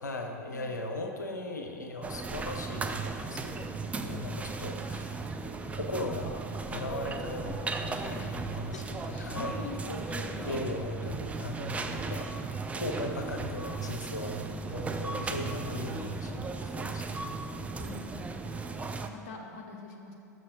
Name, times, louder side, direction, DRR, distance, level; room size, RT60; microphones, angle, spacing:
voice 1, 0.0-3.7 4.0-5.2 5.7-9.6 9.9-10.0 10.4-12.3 12.7-17.1, left 1 dB, 85° left, 3 dB, 0.6 m, -38 dB
sound 1, 2.0-19.1, right 4 dB, 15° right, 0.4 m, -36 dB
voice 2, 3.8-5.3 5.6-5.9 7.0-7.2 8.1-8.4 8.7-10.7 11.7-12.4 14.2-14.8 16.0-16.5 17.7-20.1, left 4 dB, 55° left, 1 dB, 0.8 m, -46 dB
6.3 x 5.5 x 5.0 m, 2.8 s
figure-of-eight pair, 85°, 9 cm